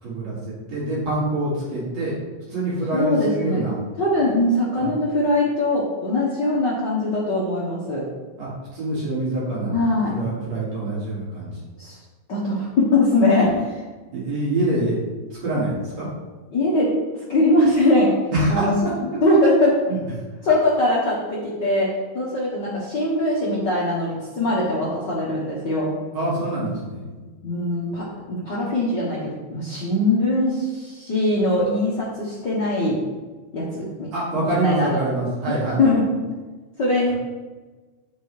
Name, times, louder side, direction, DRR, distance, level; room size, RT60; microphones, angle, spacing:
voice 1, 0.0-0.4 0.7-2.1 2.5-3.7 4.8-4.9 8.4-9.8 10.1-11.5 14.1-14.9 15.4-16.1 18.3-18.7 19.9-20.0 26.1-27.0 34.1-35.8, right 2 dB, 55° right, -7 dB, 3.1 m, -25 dB
voice 2, 2.9-3.6 4.0-8.0 9.7-10.1 11.8-12.0 12.3-13.8 16.5-16.9 17.3-18.1 18.5-18.7 19.2-19.7 20.4-21.9 22.1-25.9 27.1-33.0 33.5-34.1 34.4-35.0 35.5-36.2 36.8-37.1, left 1 dB, 80° left, -6 dB, 1.0 m, -21 dB
8.9 x 5.4 x 3.2 m, 1.3 s
omnidirectional pair, 3.7 m